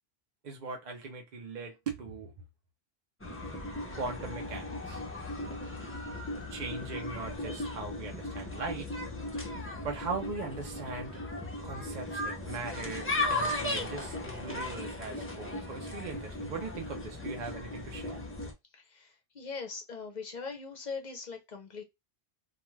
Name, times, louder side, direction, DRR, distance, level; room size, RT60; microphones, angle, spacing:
voice 1, 0.4-2.3 4.0-5.0 6.5-8.9 9.8-11.2 11.6-18.2, right 4 dB, 50° right, 0.6 m, -39 dB
sound 1, 3.2-18.5, left 2 dB, 20° left, 0.4 m, -37 dB
voice 2, 18.7-21.8, left 4 dB, 50° left, 0.7 m, -41 dB
2.3 x 2.2 x 3.0 m
omnidirectional pair, 1.1 m